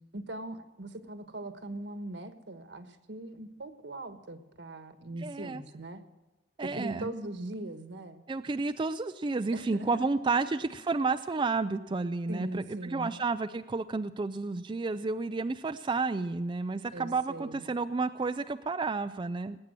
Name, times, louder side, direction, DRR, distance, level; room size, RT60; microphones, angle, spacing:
voice 1, 0.1-6.0 6.6-8.2 9.5-9.9 10.3-10.7 12.3-13.1 16.9-17.7, right 1 dB, 75° right, 10 dB, 1.4 m, -40 dB
voice 2, 5.2-5.6 6.6-7.1 8.3-19.6, right 3 dB, 25° right, 9 dB, 0.4 m, -31 dB
19.5 x 8.7 x 7.5 m, 1.1 s
head